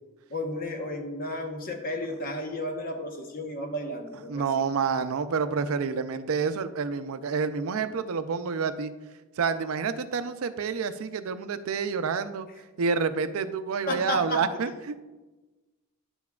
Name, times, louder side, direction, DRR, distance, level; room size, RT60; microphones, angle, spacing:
voice 1, 0.3-4.4 13.9-14.4, left 1 dB, 45° left, 3 dB, 1.0 m, -33 dB
voice 2, 4.3-8.9 9.4-12.5 12.8-15.0, right 5 dB, 75° right, 11 dB, 0.4 m, -28 dB
10.5 x 7.0 x 2.3 m, 1.2 s
head